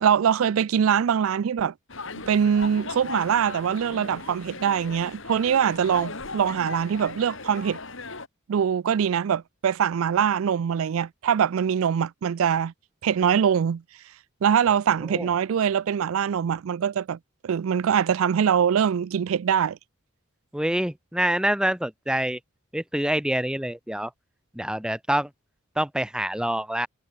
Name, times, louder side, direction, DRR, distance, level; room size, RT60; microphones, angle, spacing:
voice 1, 0.0-1.7 2.3-7.8 8.5-12.7 13.0-13.8 14.4-17.2 17.4-19.8, right 8 dB, 75° right, 0.4 m, -23 dB
sound 1, 1.9-8.3, left 3 dB, 65° left, 5.0 m, -38 dB
voice 2, 20.5-22.4 22.7-24.1 24.5-25.3 25.8-26.9, right 1 dB, 5° right, 0.8 m, -26 dB
head